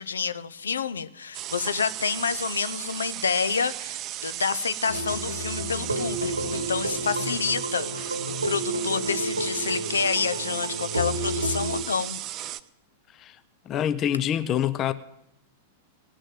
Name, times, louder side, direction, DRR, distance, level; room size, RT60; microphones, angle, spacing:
voice 1, 0.0-8.2 8.4-12.2, left 6 dB, 75° left, 0.7 m, -28 dB
sound 1, 1.3-12.6, right 13 dB, 35° right, 0.6 m, -35 dB
sound 2, 4.9-11.8, right 1 dB, 85° right, 1.3 m, -31 dB
voice 2, 13.7-14.9, left 10 dB, 30° left, 0.6 m, -25 dB
17.5 x 6.4 x 9.1 m
figure-of-eight pair, 95°, 0 cm